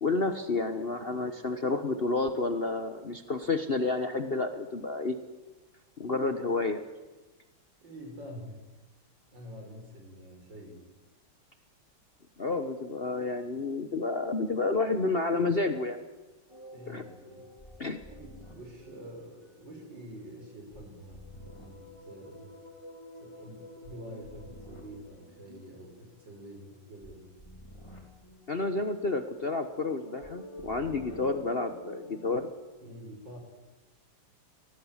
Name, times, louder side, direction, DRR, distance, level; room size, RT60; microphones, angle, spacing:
voice 1, 0.0-5.1 6.0-6.8 12.4-16.0 16.9-17.0 17.8-18.0 28.5-32.5, left 3 dB, 35° left, 8 dB, 1.1 m, -30 dB
voice 2, 7.8-8.7 9.3-10.8 16.7-17.5 18.1-22.6 23.1-27.3 32.8-33.4, equal, 70° right, 2 dB, 6.4 m, -47 dB
sound 1, 16.5-20.1 20.4-32.2, left 1 dB, 15° left, 3.5 m, -49 dB
23.0 x 18.5 x 7.3 m, 1.2 s
omnidirectional pair, 2.1 m